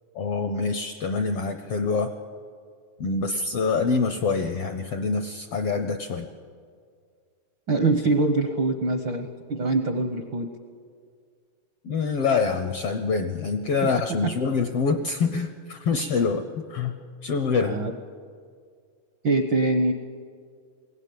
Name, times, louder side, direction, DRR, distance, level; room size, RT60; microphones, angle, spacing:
voice 1, 0.1-2.1 3.0-6.3 11.8-17.8, left 4 dB, 75° left, 7 dB, 1.4 m, -25 dB
voice 2, 7.7-10.5 17.6-17.9 19.2-19.9, right 2 dB, 75° right, 6 dB, 1.1 m, -23 dB
22.0 x 17.5 x 9.4 m, 2.1 s
omnidirectional pair, 3.7 m